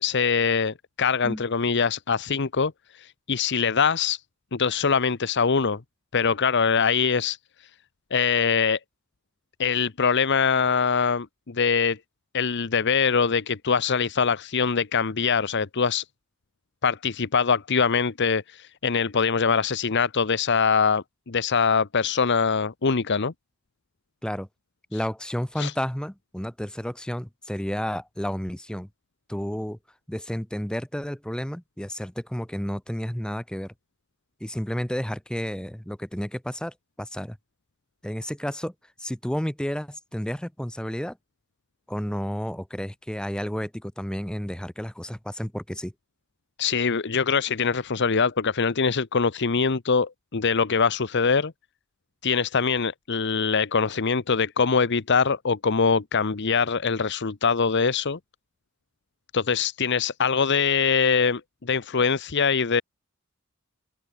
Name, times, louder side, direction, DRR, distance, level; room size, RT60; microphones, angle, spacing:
voice 1, 0.0-4.2 4.5-5.8 6.1-7.4 8.1-8.8 9.6-12.0 12.3-16.0 16.8-23.3 25.6-25.7 46.6-51.5 52.2-58.2 59.3-62.8, left 5 dB, 55° left, 0.9 m, -23 dB
voice 2, 24.9-28.9 29.3-29.8 30.1-33.7 34.4-37.4 38.0-38.7 39.0-41.2 41.9-45.9, equal, 5° left, 0.8 m, -31 dB
open air
head